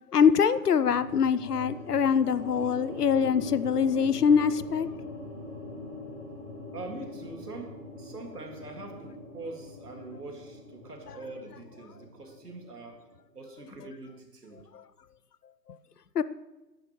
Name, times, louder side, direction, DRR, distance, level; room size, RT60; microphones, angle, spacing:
voice 1, 0.1-4.9 16.2-16.3, left 7 dB, 65° left, 15 dB, 0.6 m, -23 dB
sound 1, 0.8-13.1, left 2 dB, 10° left, 4.1 m, -42 dB
voice 2, 6.7-13.0 13.3-14.7, right 3 dB, 65° right, 3 dB, 2.2 m, -43 dB
15.0 x 10.5 x 3.1 m, 1.1 s
figure-of-eight pair, 135°, 50 cm